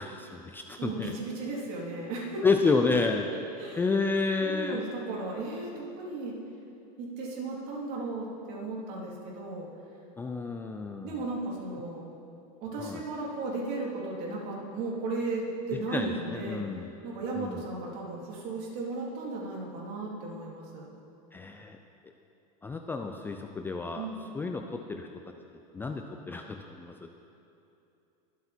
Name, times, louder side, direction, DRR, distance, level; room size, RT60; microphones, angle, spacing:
voice 1, 0.0-1.1 2.4-3.3 3.8-4.8 10.2-11.2 12.8-13.0 15.7-16.9 17.4-17.6 21.3-21.8 22.6-24.1 24.3-25.1 25.7-27.1, left 4 dB, 10° left, 4 dB, 0.4 m, -30 dB
voice 2, 0.8-2.5 3.6-3.8 4.4-6.4 7.0-9.7 11.0-12.1 12.6-16.6 17.0-20.9 24.0-24.2, right 3 dB, 50° right, -3 dB, 3.6 m, -35 dB
23.0 x 8.3 x 4.5 m, 2.7 s
supercardioid pair, 145°, 21 cm